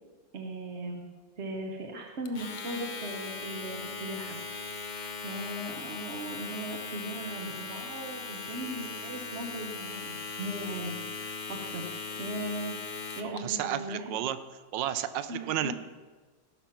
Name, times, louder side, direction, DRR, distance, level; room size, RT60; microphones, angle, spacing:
voice 1, 0.3-1.0 1.4-4.4 4.9-11.8 12.2-12.8 13.2-14.2 15.3-15.7, right 1 dB, 45° right, 1 dB, 1.2 m, -38 dB
Domestic sounds home sounds, 2.2-13.4, left 4 dB, 70° left, 0.4 m, -39 dB
voice 2, 13.2-14.4 14.7-15.7, right 11 dB, 85° right, 13 dB, 1.3 m, -32 dB
16.5 x 5.9 x 5.9 m, 1.4 s
omnidirectional pair, 1.9 m